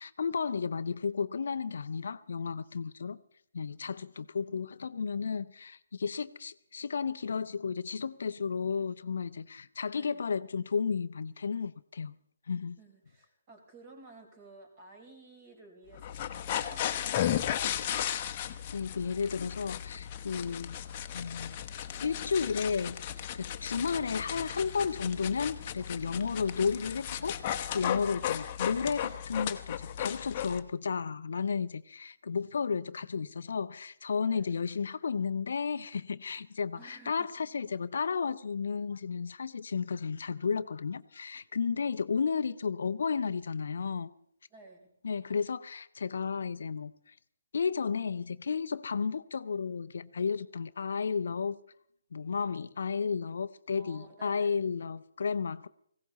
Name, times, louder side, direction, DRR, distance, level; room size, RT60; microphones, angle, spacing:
voice 1, 0.0-3.2 3.5-12.1 12.5-12.8 18.7-20.8 21.1-21.6 22.0-23.0 23.3-44.1 45.0-47.1 47.5-51.6 52.1-55.7, left 5 dB, 60° left, 0.6 m, -33 dB
voice 2, 9.9-10.3 12.8-18.0 28.0-28.5 34.2-34.6 36.7-37.3 41.6-41.9 44.5-44.9 53.7-54.6, right 2 dB, 30° right, 4.4 m, -55 dB
sound 1, 15.9-30.6, left 10 dB, 30° left, 0.9 m, -35 dB
19.0 x 16.5 x 4.1 m
figure-of-eight pair, 140°, 0 cm